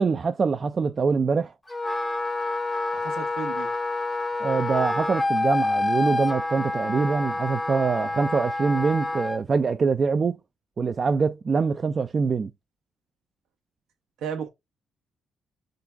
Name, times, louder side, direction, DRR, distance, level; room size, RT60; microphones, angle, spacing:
voice 1, 0.0-1.5 4.4-10.4 10.8-12.5, right 5 dB, 40° right, 0.3 m, -24 dB
Wind instrument woodwind instrument, 1.7-9.4, left 2 dB, 15° left, 0.6 m, -27 dB
voice 2, 2.9-3.7 14.2-14.5, right 7 dB, 85° right, 1.1 m, -33 dB
3.8 x 2.4 x 4.3 m
cardioid pair, 90°, 0 cm